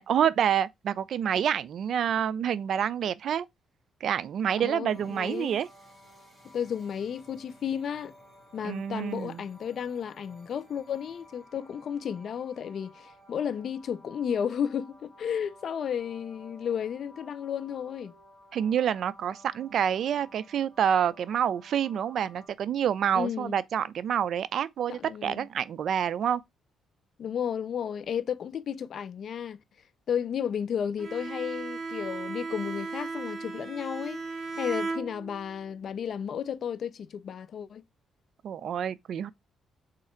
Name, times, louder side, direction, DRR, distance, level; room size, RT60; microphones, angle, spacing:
voice 1, 0.0-3.5 4.0-5.7 8.6-9.4 18.5-26.4 38.4-39.3, right 9 dB, 65° right, 0.3 m, -28 dB
voice 2, 4.6-5.6 6.4-8.1 8.5-18.1 23.1-23.6 24.9-25.5 27.2-29.6 30.1-34.2 34.6-37.8, left 8 dB, 60° left, 0.4 m, -33 dB
sound 1, 4.9-22.5, equal, 10° right, 1.8 m, -55 dB
Bowed string instrument, 31.0-35.6, right 3 dB, 35° right, 1.9 m, -36 dB
3.7 x 3.2 x 4.3 m
cardioid pair, 90°, 0 cm